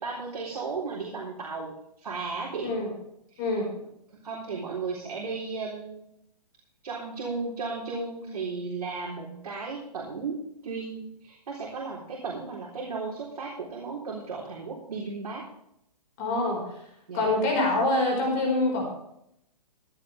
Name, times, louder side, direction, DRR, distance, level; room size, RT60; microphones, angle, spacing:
voice 1, 0.0-2.8 3.3-3.6 4.2-6.0 6.8-15.5 17.1-17.3, right 4 dB, 70° right, -4 dB, 3.8 m, -35 dB
voice 2, 3.4-3.7 16.2-16.6 17.1-18.9, left 2 dB, 30° left, 1 dB, 4.8 m, -25 dB
15.0 x 11.5 x 3.4 m, 0.77 s
hypercardioid pair, 165°, 21 cm